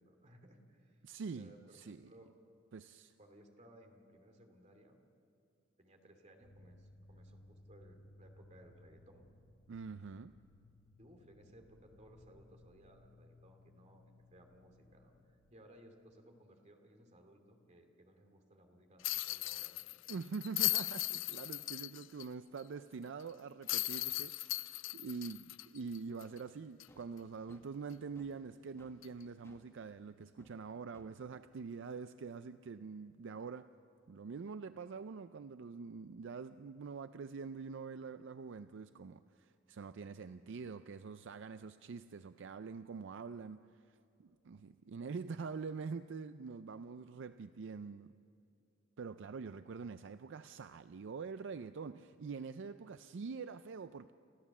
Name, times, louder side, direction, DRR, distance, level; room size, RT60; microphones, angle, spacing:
voice 1, 0.0-1.1 1.3-2.4 3.2-5.0 5.8-9.3 11.0-19.8 20.1-20.2, right 1 dB, 35° right, 4 dB, 2.6 m, -61 dB
voice 2, 1.0-2.1 2.7-3.1 9.7-10.3 20.1-33.7 34.1-48.1 49.0-54.1, right 5 dB, 65° right, 12 dB, 0.4 m, -45 dB
sound 1, 6.4-15.8, left 1 dB, 40° left, 0.9 m, -62 dB
sound 2, 19.0-22.3 22.6-22.7 23.7-26.4 26.8-26.9 29.0-29.2, left 18 dB, 65° left, 0.4 m, -37 dB
sound 3, 26.9-27.1 27.5-28.4 28.8-29.0 29.4-29.7 30.4-30.6 30.9-31.1 34.0-34.8, left 1 dB, 15° left, 1.5 m, -64 dB
30.0 x 14.0 x 7.2 m, 2.7 s
head